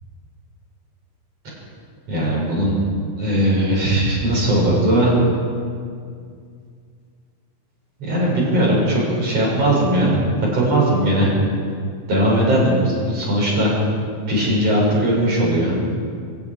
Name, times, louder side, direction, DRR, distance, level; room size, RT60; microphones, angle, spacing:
voice 1, 2.1-2.8 3.2-5.1 8.0-10.2 10.5-11.3 12.1-13.8 14.3-15.7, right 1 dB, 35° right, -4 dB, 7.4 m, -19 dB
24.5 x 11.0 x 9.9 m, 2.2 s
omnidirectional pair, 5.3 m